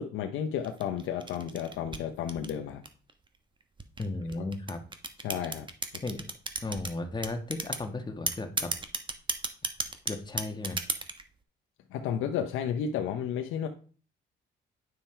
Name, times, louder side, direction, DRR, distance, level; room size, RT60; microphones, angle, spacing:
voice 1, 0.0-2.8 5.2-5.7 5.9-6.0 11.9-13.7, left 8 dB, 90° left, 4 dB, 0.8 m, -32 dB
sound 1, 0.6-3.1 3.8-6.9 7.2-7.8 8.3-11.2, right 3 dB, 25° right, 1.2 m, -33 dB
voice 2, 4.0-4.8 6.0-6.2 6.6-8.7 10.0-10.8, left 2 dB, 20° left, 5 dB, 1.6 m, -35 dB
9.7 x 5.8 x 4.5 m, 0.41 s
cardioid pair, 90°, 20 cm